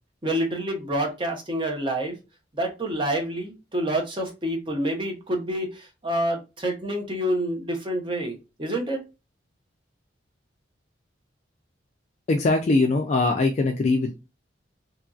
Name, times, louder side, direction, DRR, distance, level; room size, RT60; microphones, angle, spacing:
voice 1, 0.2-2.2 2.5-9.0, right 1 dB, 25° right, 2 dB, 0.6 m, -28 dB
voice 2, 12.3-14.1, left 3 dB, 35° left, 3 dB, 0.3 m, -21 dB
2.8 x 2.6 x 2.3 m, 0.27 s
head